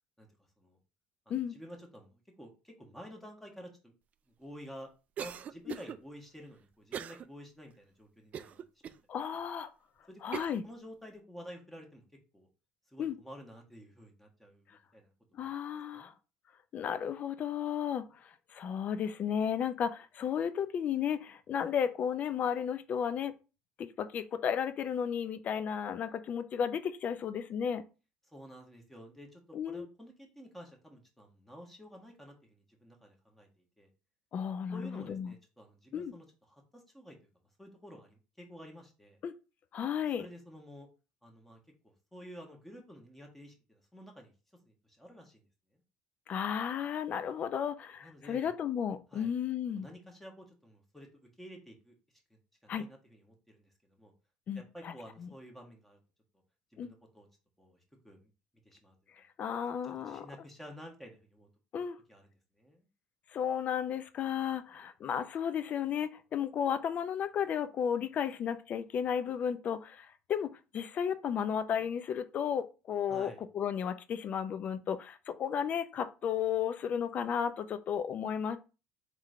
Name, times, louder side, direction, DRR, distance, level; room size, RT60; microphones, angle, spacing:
voice 1, 1.3-3.9 4.4-4.9 5.2-8.6 10.1-10.2 10.6-12.0 12.3-12.5 12.9-15.5 15.9-16.1 28.2-33.9 34.7-37.2 37.6-39.2 40.2-40.9 41.2-44.3 44.6-45.4 45.7-45.8 48.0-48.5 49.1-49.3 49.7-51.9 52.3-54.1 54.5-56.0 56.7-57.3 57.6-58.3 58.6-59.3 59.8-61.5 61.8-62.9 73.1-73.4, equal, 5° left, 1.3 m, -51 dB
Cough, 5.2-6.0 6.9-7.3 7.7-7.8 8.3-9.0 9.6-9.7 10.3-10.6, right 9 dB, 40° right, 0.3 m, -40 dB
voice 2, 9.1-9.7 10.2-10.6 13.0-13.2 15.3-16.1 16.7-23.3 23.8-27.8 29.5-29.9 34.3-35.3 35.9-36.1 39.2-39.3 39.7-40.3 46.3-49.9 52.7-52.8 54.5-54.9 55.2-55.3 56.8-56.9 59.4-60.3 61.7-62.0 63.3-78.6, left 8 dB, 45° left, 0.5 m, -34 dB
3.7 x 3.3 x 3.7 m
supercardioid pair, 105°, 4 cm